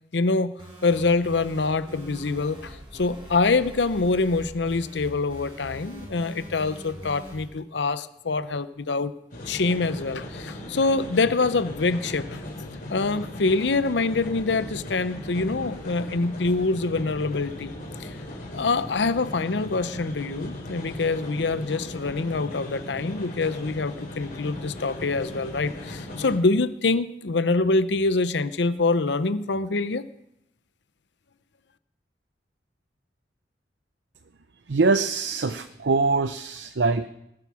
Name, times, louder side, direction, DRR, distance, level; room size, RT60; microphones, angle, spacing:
voice 1, 0.1-0.5 0.8-9.1 9.5-12.4 12.9-17.7 18.0-18.1 18.5-30.0, left 3 dB, 75° left, 14 dB, 0.7 m, -25 dB
sound 1, 0.6-7.5, right 1 dB, 30° right, 4.7 m, -43 dB
sound 2, 9.3-26.4, left 1 dB, 50° left, 4.0 m, -38 dB
voice 2, 34.7-37.1, right 3 dB, 75° right, 10 dB, 0.7 m, -23 dB
20.5 x 7.6 x 6.3 m, 0.81 s
head